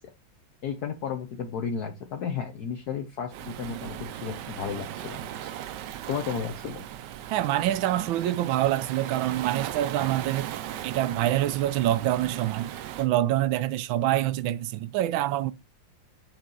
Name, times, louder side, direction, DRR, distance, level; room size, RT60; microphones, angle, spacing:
voice 1, 0.6-5.5 6.1-6.8, left 7 dB, 60° left, 1.3 m, -33 dB
Waves surf, 3.3-13.1, right 11 dB, 70° right, 1.2 m, -37 dB
voice 2, 7.3-10.5 10.8-15.5, right 13 dB, 85° right, 1.4 m, -26 dB
7.1 x 3.9 x 3.8 m
omnidirectional pair, 2.1 m